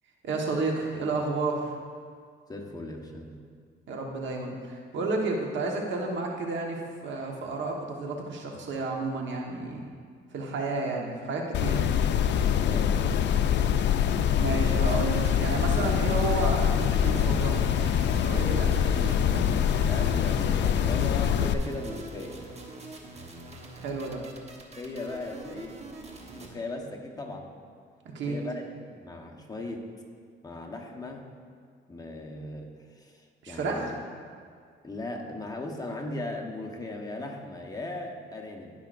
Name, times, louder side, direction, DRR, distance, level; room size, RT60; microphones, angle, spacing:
voice 1, 0.2-1.7 3.9-9.9 10.3-11.8 14.4-17.6 18.2-19.4 23.8-24.2 28.1-28.4 33.4-33.9, right 3 dB, 70° right, 1 dB, 1.3 m, -31 dB
voice 2, 2.5-3.4 12.5-13.0 15.8-15.9 19.7-22.4 24.8-25.8 26.3-27.5 28.2-29.9 30.4-31.2 31.9-34.0 34.8-38.7, left 2 dB, 20° left, 0 dB, 1.1 m, -38 dB
sound 1, 11.5-21.5, left 8 dB, 65° left, 0.5 m, -24 dB
sound 2, 14.8-26.5, right 1 dB, 35° right, 1.2 m, -44 dB
16.5 x 5.8 x 2.6 m, 2.1 s
cardioid pair, 90°, 20 cm